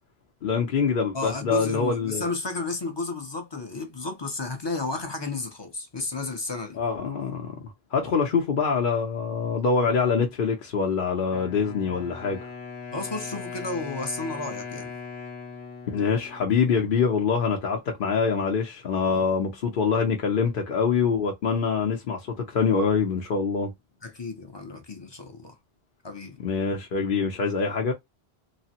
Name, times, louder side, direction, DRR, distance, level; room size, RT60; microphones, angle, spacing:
voice 1, 0.4-2.3 6.8-12.5 15.9-23.7 26.4-27.9, left 5 dB, 55° left, 0.8 m, -25 dB
voice 2, 1.1-6.8 12.9-14.9 19.1-19.3 24.0-25.5 26.0-26.4, left 3 dB, 30° left, 0.6 m, -32 dB
Wind instrument woodwind instrument, 11.3-17.3, left 5 dB, 75° left, 1.2 m, -39 dB
3.2 x 2.0 x 2.8 m
omnidirectional pair, 1.1 m